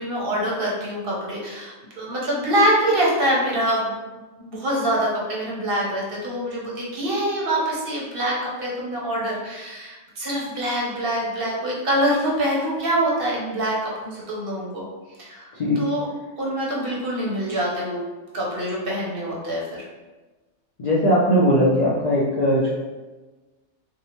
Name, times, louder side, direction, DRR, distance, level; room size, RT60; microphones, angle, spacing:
voice 1, 0.0-4.0 4.4-14.8 15.2-15.5 15.8-16.0 16.4-18.0 18.3-19.8, right 1 dB, 55° right, -5 dB, 0.8 m, -25 dB
voice 2, 20.8-22.7, equal, 80° left, -7 dB, 0.3 m, -19 dB
2.7 x 2.1 x 2.8 m, 1.2 s
omnidirectional pair, 1.3 m